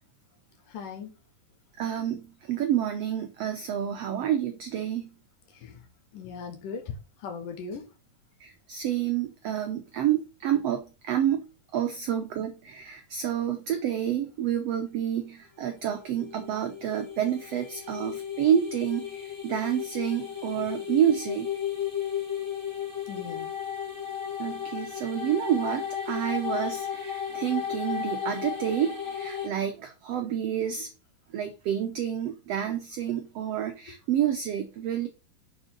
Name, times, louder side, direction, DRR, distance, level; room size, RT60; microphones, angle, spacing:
voice 1, 0.7-1.1 5.6-5.8 6.1-6.8 7.2-7.8 23.1-23.5, left 5 dB, 70° left, 2.8 m, -38 dB
voice 2, 1.8-5.1 8.4-11.5 11.7-21.5 24.4-30.9 31.3-35.1, right 10 dB, 85° right, 1.4 m, -29 dB
sound 1, 16.0-29.5, left 9 dB, 10° left, 1.1 m, -34 dB
6.8 x 6.4 x 5.3 m
omnidirectional pair, 4.0 m